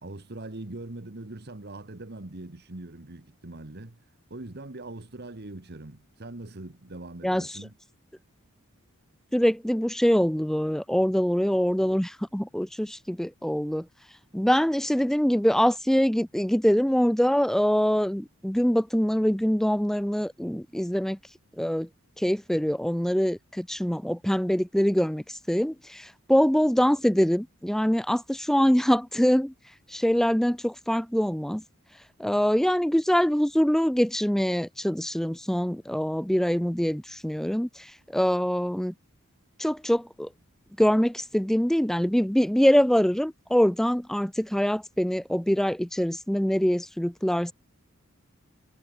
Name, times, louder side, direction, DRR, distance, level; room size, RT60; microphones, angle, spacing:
voice 1, 0.0-4.0 4.3-7.7, right 2 dB, 50° right, 1.4 m, -41 dB
voice 2, 9.3-13.9 14.3-21.2 21.6-21.9 22.2-29.5 29.9-31.6 32.2-38.9 39.6-40.3 40.8-47.5, equal, ahead, 0.4 m, -24 dB
head